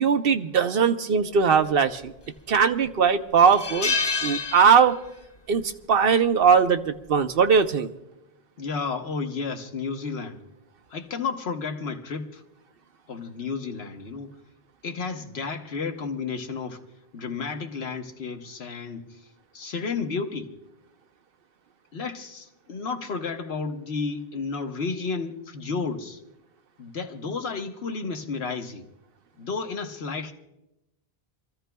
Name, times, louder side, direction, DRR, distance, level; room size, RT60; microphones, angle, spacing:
voice 1, 0.0-2.1 2.5-4.0 4.2-5.0 5.5-7.9, right 6 dB, 65° right, 8 dB, 0.9 m, -20 dB
sound 1, 2.0-2.6 2.9-3.0 3.4-5.3 5.5-5.8 7.0-7.3, left 4 dB, 35° left, 0.4 m, -28 dB
voice 2, 8.6-10.4 10.9-12.4 13.1-14.3 14.8-16.8 17.1-19.2 19.5-20.5 21.9-26.2 26.8-28.9 29.4-30.3, left 4 dB, 80° left, 5 dB, 1.3 m, -32 dB
27.5 x 14.5 x 2.3 m, 0.91 s
omnidirectional pair, 1.1 m